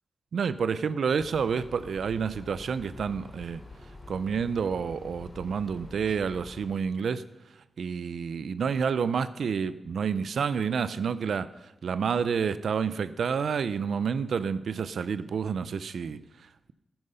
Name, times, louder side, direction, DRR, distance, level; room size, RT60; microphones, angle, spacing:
voice 1, 0.3-3.6 4.1-7.2 7.5-16.7, right 6 dB, 80° right, 14 dB, 0.6 m, -29 dB
sound 1, 1.2-6.7, left 2 dB, 25° left, 3.6 m, -47 dB
13.5 x 10.5 x 5.6 m, 0.96 s
wide cardioid pair, 135°, 0 cm